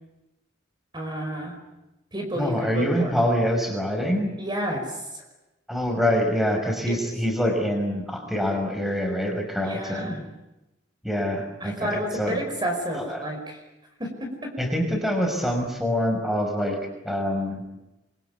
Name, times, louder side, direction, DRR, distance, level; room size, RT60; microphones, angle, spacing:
voice 1, 0.9-1.6 2.1-3.1 4.4-5.2 6.9-7.0 9.6-10.2 11.6-13.6 14.0-14.5, equal, 25° right, 3 dB, 5.3 m, -30 dB
voice 2, 2.3-4.4 5.7-10.2 11.0-12.4 12.9-13.3 14.6-16.8 17.0-17.6, equal, ahead, 4 dB, 5.8 m, -25 dB
29.0 x 23.5 x 8.5 m, 0.96 s
head